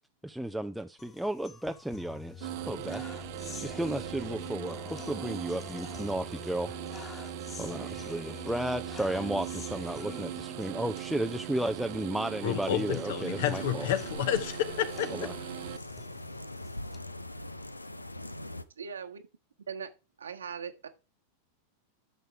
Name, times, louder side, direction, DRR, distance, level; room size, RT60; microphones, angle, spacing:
voice 1, 0.2-3.0 3.5-6.7 7.6-13.9 15.1-15.3, right 1 dB, ahead, 0.6 m, -34 dB
sound 1, 1.0-17.0, left 6 dB, 25° left, 2.0 m, -47 dB
sound 2, 2.4-15.8, right 15 dB, 50° right, 0.7 m, -40 dB
voice 2, 12.4-15.3, left 10 dB, 55° left, 1.4 m, -30 dB
sound 3, 13.5-18.6, left 1 dB, 85° left, 0.7 m, -42 dB
voice 3, 18.8-19.2 19.7-19.9 20.2-20.9, right 6 dB, 70° right, 1.4 m, -39 dB
12.5 x 6.8 x 4.7 m
figure-of-eight pair, 90°, 0 cm